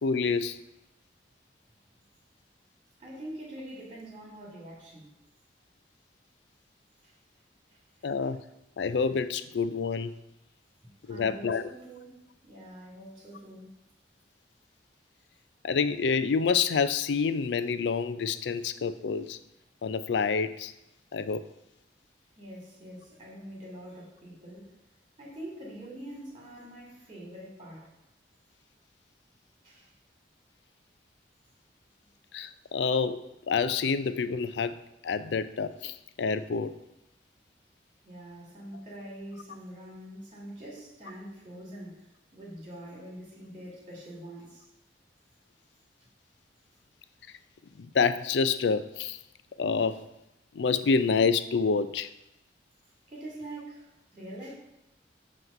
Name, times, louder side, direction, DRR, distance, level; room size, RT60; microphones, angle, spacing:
voice 1, 0.0-0.6 8.0-8.4 8.8-10.1 11.1-11.7 15.6-19.4 19.8-20.7 21.1-21.4 32.3-34.7 35.0-36.8 47.8-49.2 49.6-50.0 50.5-52.1, left 5 dB, 75° left, 12 dB, 0.4 m, -27 dB
voice 2, 3.0-5.1 7.0-7.2 7.7-7.8 8.2-8.3 11.1-13.7 22.4-24.7 25.2-27.9 29.6-29.9 38.0-44.7 53.1-54.5, right 1 dB, 30° right, -4 dB, 2.1 m, -44 dB
7.8 x 3.1 x 5.4 m, 0.89 s
head